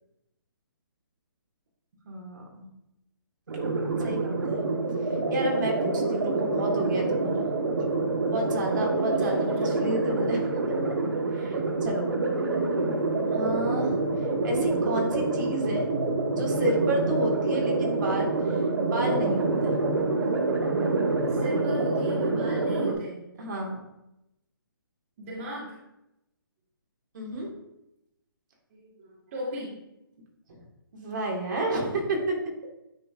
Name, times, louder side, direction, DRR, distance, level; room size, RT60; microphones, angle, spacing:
voice 1, 2.1-2.7 4.0-4.6 5.1-7.5 8.3-9.4 9.6-10.6 11.3-12.1 13.3-13.9 14.4-15.9 16.3-19.8 23.4-23.8 27.1-27.5 30.5-30.6 30.9-32.4, right 1 dB, 55° right, -1 dB, 1.8 m, -31 dB
sound 1, 3.5-22.9, right 3 dB, 75° right, 1.3 m, -27 dB
voice 2, 9.1-9.8 21.3-23.3 25.2-25.8 28.7-29.8, equal, 35° right, -5 dB, 1.7 m, -37 dB
10.5 x 3.7 x 2.5 m, 0.87 s
hypercardioid pair, 160°, 12 cm